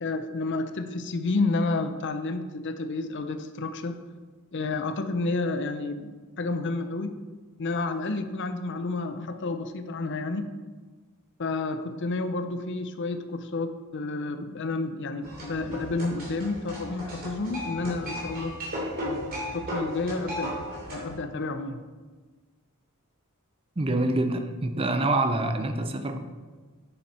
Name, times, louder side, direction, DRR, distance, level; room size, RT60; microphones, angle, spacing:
voice 1, 0.0-4.0 4.5-7.2 7.6-10.5 11.4-18.6 19.0-21.8, left 3 dB, 55° left, 9 dB, 0.6 m, -30 dB
sound 1, 15.2-21.2, equal, 45° right, 3.1 m, -35 dB
voice 2, 23.8-26.2, right 2 dB, 25° right, 7 dB, 0.6 m, -26 dB
9.6 x 6.9 x 4.3 m, 1.4 s
head